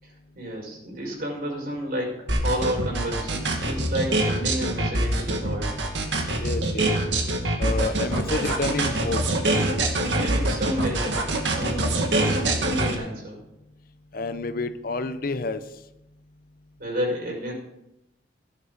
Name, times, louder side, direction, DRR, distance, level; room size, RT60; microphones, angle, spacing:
voice 1, 0.0-5.7 10.1-11.0 11.4-13.4 16.8-17.5, equal, 55° right, -2 dB, 5.6 m, -31 dB
sound 1, 2.3-12.9, right 1 dB, 80° right, 2.1 m, -24 dB
voice 2, 6.4-7.0 7.6-9.2 14.1-15.6, left 3 dB, 50° left, 11 dB, 0.8 m, -29 dB
17.0 x 11.5 x 4.1 m, 0.86 s
head